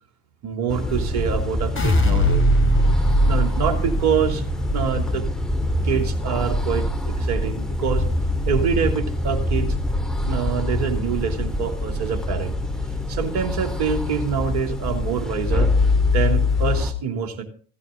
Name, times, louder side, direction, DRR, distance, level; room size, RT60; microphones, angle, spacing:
voice 1, 0.4-2.5 3.2-4.4 4.7-5.2 5.8-8.0 8.5-9.8 10.3-12.5 13.1-15.7 16.1-17.4, right 7 dB, 60° right, 6 dB, 3.4 m, -25 dB
sound 1, 0.7-16.9, left 2 dB, ahead, 2.9 m, -24 dB
sound 2, 1.8-7.9 8.3-8.9, equal, 25° left, 4.1 m, -22 dB
16.0 x 15.0 x 4.0 m, 0.41 s
hypercardioid pair, 65°, 45 cm